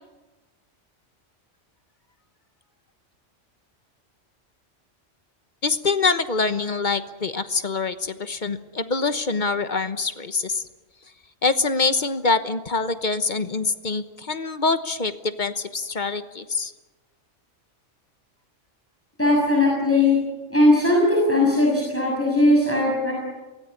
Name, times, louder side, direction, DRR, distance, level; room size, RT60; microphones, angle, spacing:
voice 1, 5.6-10.6 11.4-16.7, left 4 dB, 40° left, 11 dB, 1.2 m, -25 dB
voice 2, 19.2-20.2 20.5-23.1, left 2 dB, 10° left, -3 dB, 6.5 m, -19 dB
24.0 x 18.0 x 9.6 m, 1.2 s
omnidirectional pair, 1.3 m